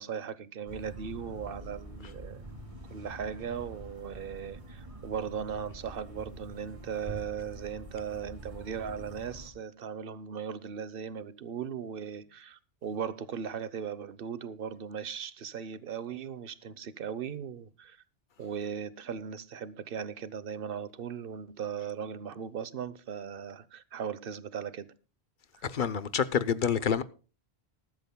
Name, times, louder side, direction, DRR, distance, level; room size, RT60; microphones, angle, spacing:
voice 1, 0.0-2.5 2.9-18.0 18.4-24.9 25.6-25.7, right 7 dB, 60° right, 1.0 m, -38 dB
sound 1, 0.7-9.5, right 1 dB, 30° right, 2.7 m, -46 dB
voice 2, 25.6-27.0, left 7 dB, 55° left, 0.8 m, -28 dB
20.0 x 12.0 x 2.2 m
omnidirectional pair, 1.1 m